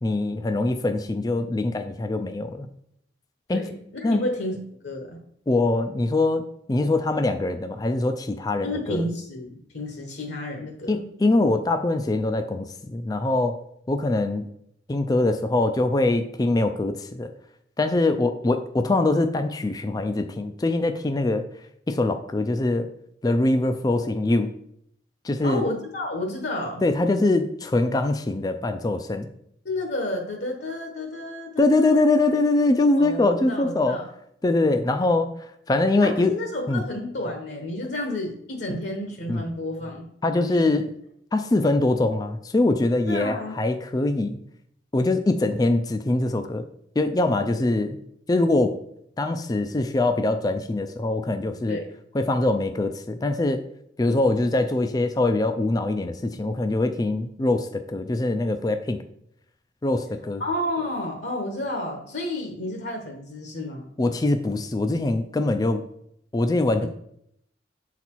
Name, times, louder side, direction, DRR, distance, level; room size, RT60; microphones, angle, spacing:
voice 1, 0.0-2.7 3.5-3.6 4.0-4.2 5.5-6.4 6.7-9.0 10.9-13.6 13.9-14.5 14.9-17.3 17.8-21.5 21.9-22.9 23.2-24.5 25.2-25.6 26.8-29.3 31.6-34.0 34.4-35.3 35.7-36.3 36.7-36.8 38.7-38.8 39.3-39.4 40.2-40.9 41.3-44.4 44.9-46.6 47.0-48.0 48.3-48.8 49.2-51.8 52.1-53.6 54.0-59.0 59.8-60.4 64.0-65.8 66.3-66.9, left 2 dB, 20° left, 8 dB, 0.3 m, -23 dB
voice 2, 3.5-4.6 4.8-5.1 8.6-11.1 25.4-26.8 29.6-32.0 33.0-34.1 36.0-40.1 40.3-40.7 43.1-43.6 51.7-51.9 54.1-54.2 60.4-63.9 66.8-66.9, left 1 dB, 65° left, 2 dB, 1.0 m, -31 dB
7.1 x 4.1 x 4.4 m, 0.71 s
head